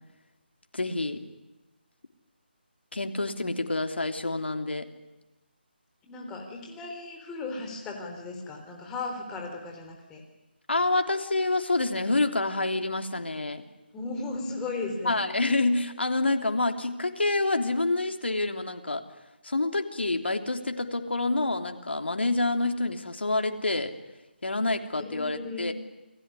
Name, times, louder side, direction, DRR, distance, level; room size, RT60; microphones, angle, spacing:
voice 1, 0.7-1.2 2.9-4.9 10.7-13.6 15.0-19.0 19.4-23.9 24.4-25.7, left 2 dB, 80° left, 5 dB, 3.3 m, -27 dB
voice 2, 6.0-10.2 13.9-15.2 24.9-25.7, left 3 dB, 10° left, 2 dB, 3.8 m, -36 dB
29.0 x 20.0 x 9.9 m, 1.0 s
figure-of-eight pair, 160°, 6 cm